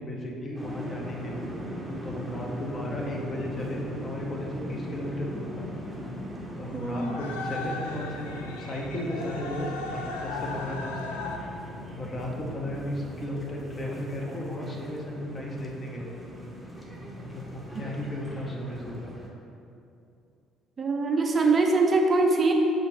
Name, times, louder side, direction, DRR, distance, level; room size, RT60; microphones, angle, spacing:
voice 1, 0.0-1.5 2.0-5.7 6.6-11.6 11.9-16.1 17.2-19.1, left 1 dB, 35° left, -2 dB, 0.8 m, -35 dB
sound 1, 0.6-19.3, equal, ahead, 0.8 m, -39 dB
sound 2, 1.1-11.4, left 3 dB, 75° left, 0.3 m, -39 dB
voice 2, 6.7-7.2 20.8-22.5, right 3 dB, 35° right, 2 dB, 0.4 m, -23 dB
6.3 x 2.4 x 3.4 m, 2.7 s
figure-of-eight pair, 50°, 0 cm